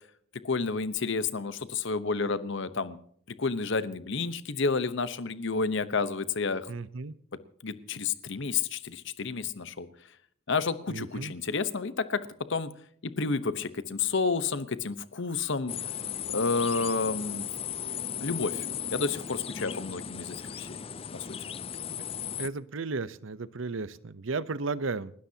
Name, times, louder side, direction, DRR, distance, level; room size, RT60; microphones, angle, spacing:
voice 1, 0.4-3.0 3.4-6.7 7.6-9.9 10.5-12.7 13.2-15.7 16.3-17.5 18.2-18.7 18.9-20.8 21.1-21.3, left 4 dB, 65° left, 13 dB, 1.0 m, -30 dB
voice 2, 6.7-7.1 10.9-11.3 22.4-25.1, right 3 dB, 70° right, 16 dB, 0.7 m, -34 dB
sound 1, 15.7-22.5, left 8 dB, 30° left, 0.5 m, -36 dB
30.0 x 12.5 x 2.8 m, 0.63 s
head